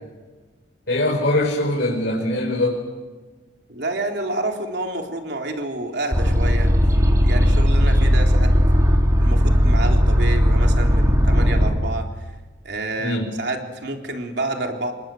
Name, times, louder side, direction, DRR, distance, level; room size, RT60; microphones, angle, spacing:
voice 1, 0.9-2.8 13.0-13.3, left 1 dB, 65° left, -2 dB, 5.0 m, -22 dB
voice 2, 3.7-6.7 7.2-8.5 9.2-12.3 12.6-14.9, right 2 dB, 60° right, 3 dB, 3.8 m, -28 dB
sound 1, 6.1-11.7, equal, 15° right, 3.8 m, -17 dB
28.0 x 24.0 x 7.8 m, 1.3 s
head